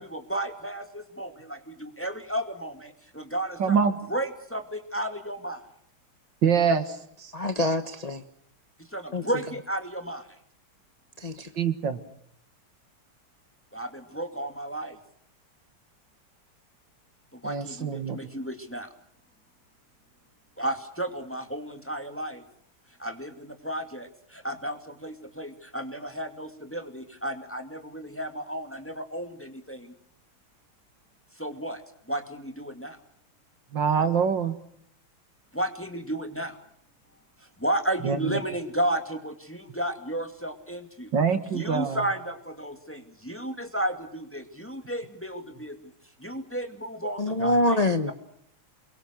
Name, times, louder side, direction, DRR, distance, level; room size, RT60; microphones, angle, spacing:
voice 1, 0.0-3.8 4.1-5.6 8.8-10.3 13.7-15.0 17.3-18.9 20.6-22.4 23.0-29.9 31.4-31.8 32.1-33.0 35.5-36.6 37.6-41.1 41.5-45.8 46.2-48.1, right 1 dB, 5° left, 7 dB, 2.2 m, -33 dB
voice 2, 3.6-3.9 6.4-7.0 11.6-12.0 17.4-18.2 33.7-34.6 38.0-38.4 41.1-42.0, right 6 dB, 60° right, 9 dB, 2.4 m, -24 dB
voice 3, 7.3-8.2 9.1-9.2 11.2-11.5 47.2-48.1, left 1 dB, 25° left, 7 dB, 0.9 m, -25 dB
29.5 x 23.0 x 6.4 m, 0.69 s
omnidirectional pair, 2.3 m